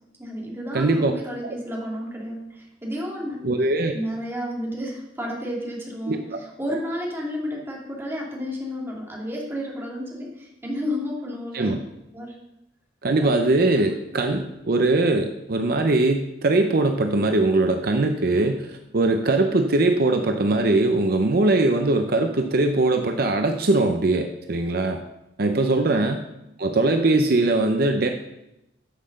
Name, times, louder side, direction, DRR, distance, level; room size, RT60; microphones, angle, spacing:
voice 1, 0.2-3.5 3.9-11.8 12.1-12.4 13.2-13.3 13.9-14.0 25.9-26.1, equal, 15° right, -3 dB, 2.3 m, -31 dB
voice 2, 0.7-1.1 1.4-1.6 3.4-3.9 6.1-6.4 11.5-11.8 13.0-25.0 25.4-26.2 26.6-28.1, right 2 dB, 55° right, 5 dB, 0.7 m, -21 dB
10.5 x 5.8 x 6.5 m, 0.90 s
head